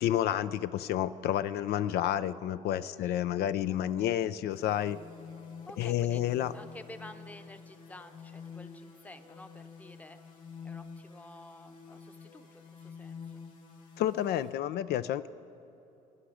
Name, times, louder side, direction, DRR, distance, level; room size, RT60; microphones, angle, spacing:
voice 1, 0.0-5.0 5.8-6.5 14.0-15.3, left 11 dB, 70° left, 13 dB, 0.4 m, -30 dB
voice 2, 2.8-3.2 3.6-4.2 5.7-6.2 6.5-10.2 10.6-13.4, left 1 dB, 10° left, 8 dB, 0.8 m, -51 dB
sound 1, 4.5-14.5, left 5 dB, 50° left, 3.1 m, -49 dB
26.5 x 10.0 x 4.9 m, 2.9 s
cardioid pair, 110°, 17 cm